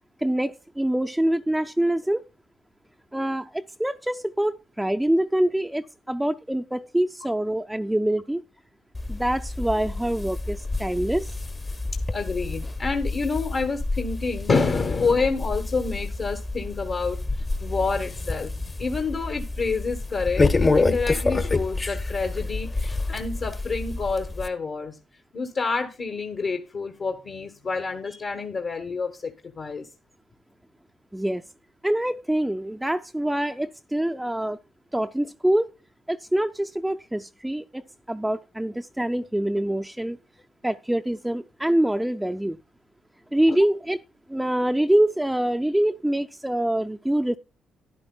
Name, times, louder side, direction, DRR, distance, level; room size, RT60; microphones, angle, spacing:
voice 1, 0.2-2.3 3.1-8.4 9.1-11.3 31.1-31.4 31.8-34.6 34.9-35.7 36.1-37.8 38.1-40.2 40.6-42.6 43.3-44.0 44.3-47.4, right 1 dB, 10° right, 0.5 m, -25 dB
sound 1, 8.9-24.5, left 3 dB, 30° left, 1.1 m, -28 dB
voice 2, 12.1-18.5 18.8-25.0 25.3-29.9, left 4 dB, 50° left, 1.3 m, -28 dB
13.0 x 10.5 x 2.3 m
hypercardioid pair, 45°, 0 cm